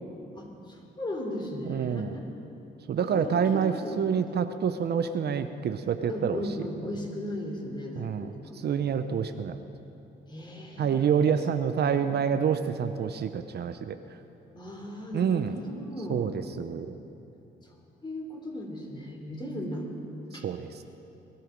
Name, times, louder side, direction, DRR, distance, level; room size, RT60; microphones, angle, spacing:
voice 1, 0.3-2.3 3.0-4.0 4.3-4.4 6.1-8.9 10.3-11.3 11.8-12.3 14.5-16.4 18.0-19.9 20.3-20.5, left 1 dB, 25° left, 0 dB, 3.4 m, -37 dB
voice 2, 1.7-2.1 2.9-6.4 8.0-9.6 10.8-14.0 15.1-15.6 16.1-17.0 20.3-20.8, right 7 dB, 55° right, 9 dB, 0.7 m, -27 dB
21.0 x 12.5 x 5.2 m, 2.8 s
cardioid pair, 90°, 20 cm